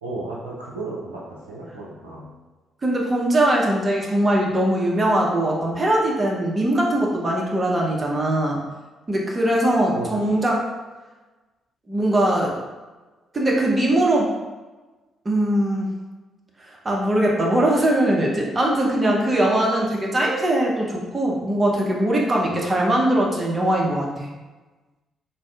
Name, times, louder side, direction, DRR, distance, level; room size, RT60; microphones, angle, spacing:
voice 1, 0.0-2.3 9.9-10.4 22.4-22.7, right 2 dB, 85° right, -6 dB, 0.5 m, -34 dB
voice 2, 2.8-8.6 9.1-10.6 11.9-12.5 13.3-14.3 15.2-15.9 16.8-24.3, right 1 dB, 30° right, -2 dB, 0.8 m, -21 dB
3.8 x 2.6 x 2.4 m, 1.2 s
figure-of-eight pair, 40°, 0 cm